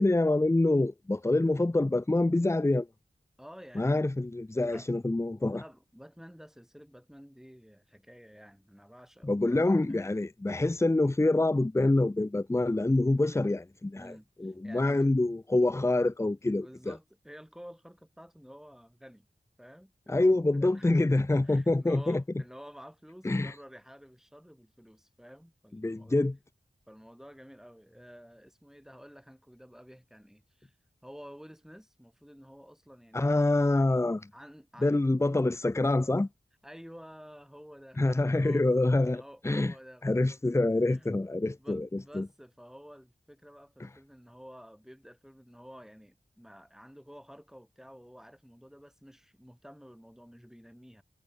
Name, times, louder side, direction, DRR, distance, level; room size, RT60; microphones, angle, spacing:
voice 1, 0.0-2.9 3.8-5.6 9.2-14.1 14.4-16.9 20.1-22.2 23.2-23.6 25.8-26.4 33.1-34.3 34.8-36.3 38.0-39.7 40.0-42.3 43.8-43.9, left 2 dB, 15° left, 0.5 m, -26 dB
voice 2, 3.4-4.1 4.6-4.9 5.4-10.0 13.9-15.1 16.6-19.3 19.6-20.9 21.3-26.2 26.9-30.8 31.0-33.5 34.3-35.0 36.6-38.0 38.3-38.7 39.1-40.4 40.9-41.1 41.6-51.0, equal, ahead, 5.8 m, -51 dB
wide cardioid pair, 45°, 19 cm